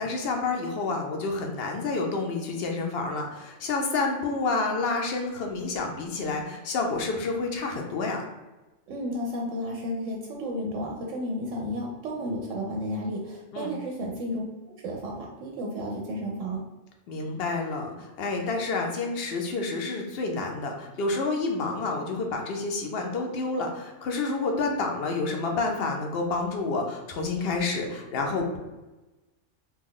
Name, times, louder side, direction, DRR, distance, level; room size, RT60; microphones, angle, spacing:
voice 1, 0.0-8.2 13.5-13.8 17.1-28.6, left 3 dB, 60° left, 2 dB, 0.7 m, -29 dB
voice 2, 8.9-16.6, equal, 75° right, 0 dB, 0.9 m, -32 dB
3.0 x 2.2 x 3.7 m, 1.1 s
omnidirectional pair, 1.3 m